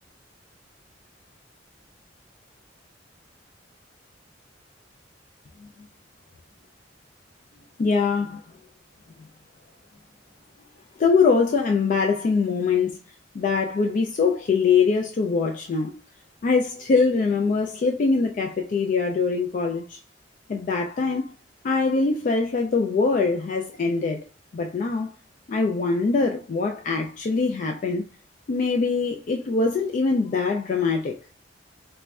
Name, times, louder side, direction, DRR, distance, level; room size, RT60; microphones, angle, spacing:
voice 1, 7.8-8.4 11.0-13.0 13.3-16.0 16.4-20.0 20.5-21.3 21.6-24.2 24.5-25.1 25.5-28.1 28.5-31.2, left 4 dB, 45° left, 0.3 m, -23 dB
4.2 x 2.1 x 2.3 m
head